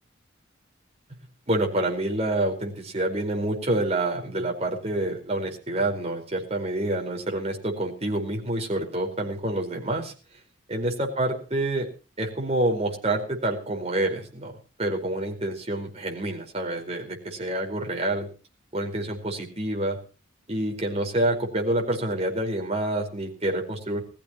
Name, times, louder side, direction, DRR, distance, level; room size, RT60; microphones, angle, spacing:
voice 1, 1.5-10.1 10.7-11.9 12.2-14.5 14.8-18.3 18.7-20.0 20.5-24.0, right 1 dB, 30° right, 1 dB, 4.7 m, -27 dB
20.5 x 15.0 x 3.0 m, 0.37 s
head